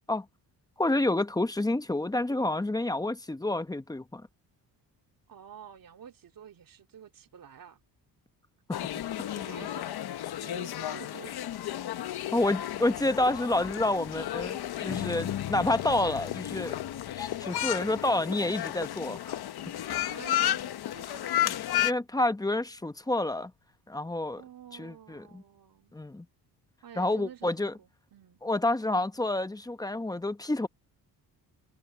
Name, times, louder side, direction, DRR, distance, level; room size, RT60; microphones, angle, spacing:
voice 1, 0.8-4.3 12.3-16.8 17.2-19.4 21.5-21.6 21.8-23.5 23.9-24.4 24.8-25.4 25.9-26.3 27.0-27.7 28.4-30.7, left 2 dB, 10° left, 0.9 m, -29 dB
voice 2, 5.3-7.8 9.3-10.0 10.3-11.3 19.8-20.6 20.9-21.5 24.3-26.0 26.8-28.4, right 9 dB, 60° right, 3.1 m, -49 dB
sound 1, 8.7-21.9, left 13 dB, 70° left, 1.2 m, -33 dB
sound 2, 14.9-19.6, left 12 dB, 55° left, 0.8 m, -40 dB
cardioid pair, 120°, 39 cm